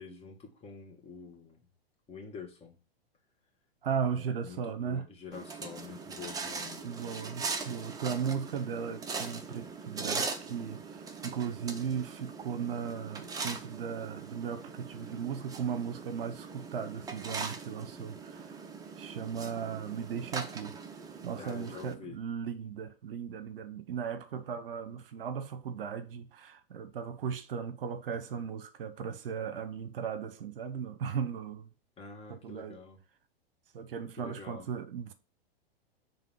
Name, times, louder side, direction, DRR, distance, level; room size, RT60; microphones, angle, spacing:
voice 1, 0.0-1.6 2.1-2.8 4.1-6.9 21.4-22.2 32.0-33.0 34.2-34.7, left 5 dB, 20° left, 1.8 m, -47 dB
voice 2, 3.8-5.1 6.8-18.6 19.0-20.7 21.2-31.7 32.3-32.8 33.7-35.1, right 7 dB, 65° right, 0.9 m, -37 dB
sound 1, 5.3-21.9, right 4 dB, 10° right, 0.6 m, -41 dB
7.0 x 3.2 x 4.7 m
figure-of-eight pair, 105°, 30 cm